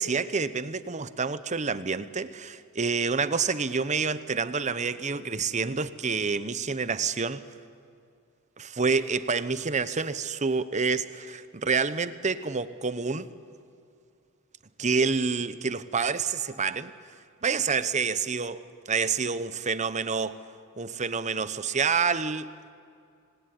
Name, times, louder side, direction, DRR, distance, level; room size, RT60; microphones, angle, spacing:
voice 1, 0.0-7.4 8.6-13.3 14.8-16.9 17.4-18.6 18.9-20.4 20.8-22.5, right 5 dB, 35° right, 0.9 m, -28 dB
26.0 x 20.5 x 9.9 m
head